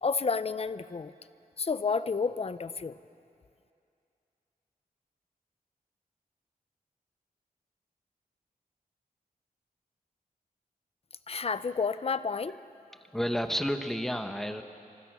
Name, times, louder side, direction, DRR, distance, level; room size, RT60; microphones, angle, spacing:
voice 1, 0.0-1.1 1.6-2.9 11.3-12.6, left 5 dB, 40° left, 14 dB, 0.6 m, -30 dB
voice 2, 12.7-14.6, equal, ahead, 7 dB, 1.2 m, -31 dB
27.0 x 25.5 x 6.2 m, 2.5 s
wide cardioid pair, 135°, 15 cm